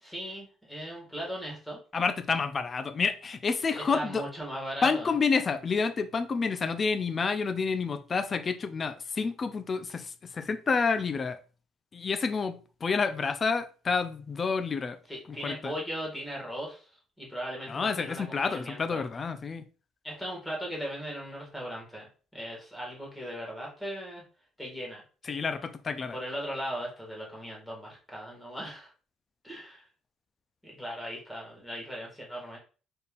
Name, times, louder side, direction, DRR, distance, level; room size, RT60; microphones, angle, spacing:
voice 1, 0.0-1.8 3.7-5.1 15.1-16.9 17.2-19.1 20.0-22.1 22.3-24.2 24.6-25.0 26.1-28.9 29.4-29.9 30.6-32.6, equal, 5° left, 1.8 m, -38 dB
voice 2, 1.9-4.2 4.8-11.4 11.9-15.0 15.3-15.7 17.7-19.7 25.2-26.2, left 5 dB, 30° left, 0.4 m, -29 dB
4.2 x 3.5 x 2.4 m
cardioid pair, 130°, 0 cm